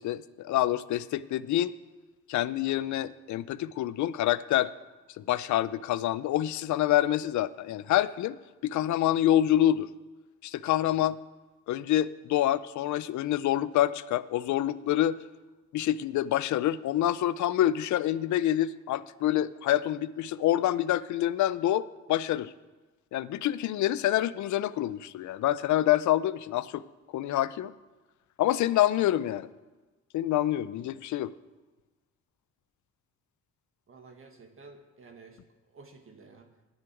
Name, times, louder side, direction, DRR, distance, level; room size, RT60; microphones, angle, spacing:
voice 1, 0.0-1.7 2.3-4.7 5.2-8.4 8.6-9.9 10.4-11.2 11.7-15.2 15.7-22.5 23.1-26.8 27.1-27.7 28.4-29.5 30.1-31.3, left 13 dB, 70° left, 17 dB, 0.6 m, -27 dB
voice 2, 33.9-35.4 35.7-36.5, right 4 dB, 45° right, 4 dB, 1.6 m, -52 dB
9.9 x 7.2 x 9.1 m, 1.2 s
cardioid pair, 90°, 30 cm